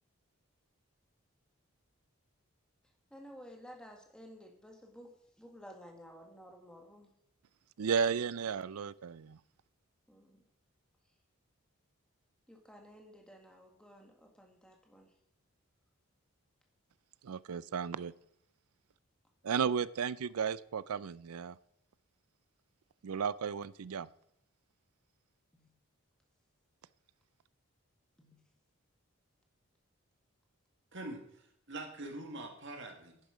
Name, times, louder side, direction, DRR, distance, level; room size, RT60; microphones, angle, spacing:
voice 1, 3.1-7.1 10.1-10.4 12.5-15.1 25.5-25.7 28.2-28.3, equal, 5° left, 1 dB, 1.8 m, -54 dB
voice 2, 7.8-9.4 17.2-18.1 19.4-21.6 23.0-24.1, right 6 dB, 85° right, 19 dB, 0.5 m, -34 dB
voice 3, 30.9-33.2, right 2 dB, 55° right, 4 dB, 1.9 m, -44 dB
10.5 x 10.5 x 5.0 m, 0.73 s
head